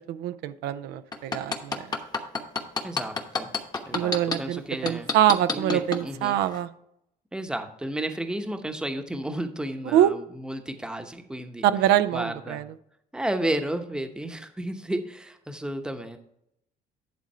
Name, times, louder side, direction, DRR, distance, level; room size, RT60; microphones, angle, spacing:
voice 1, 0.1-1.9 3.9-6.7 9.9-10.1 11.6-12.6, right 11 dB, 90° right, 12 dB, 0.5 m, -24 dB
sound 1, 1.1-4.4 4.9-6.0 6.5-6.6, left 4 dB, 25° left, 1.0 m, -27 dB
voice 2, 2.8-3.5 3.9-5.1 5.5-6.4 7.3-11.7 12.1-12.6 13.1-16.2, right 1 dB, 5° right, 6 dB, 0.8 m, -32 dB
10.5 x 3.8 x 5.5 m, 0.74 s
cardioid pair, 110°, 17 cm